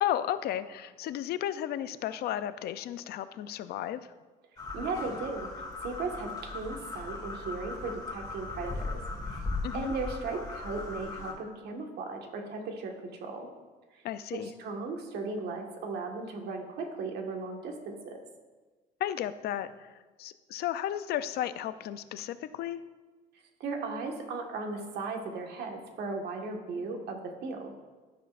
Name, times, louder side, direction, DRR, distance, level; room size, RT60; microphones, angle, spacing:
voice 1, 0.0-4.1 9.6-9.9 14.0-14.5 19.0-19.9 20.2-22.8, left 11 dB, 70° left, 13 dB, 0.5 m, -33 dB
sound 1, 4.6-11.3, left 3 dB, 25° left, 2.3 m, -38 dB
voice 2, 4.7-5.5 5.8-8.9 9.3-9.5 9.7-12.9 13.2-13.5 13.9-14.0 14.3-18.2 23.6-27.7, right 3 dB, 75° right, 2 dB, 1.6 m, -36 dB
12.5 x 10.0 x 2.5 m, 1.3 s
cardioid pair, 110°, 17 cm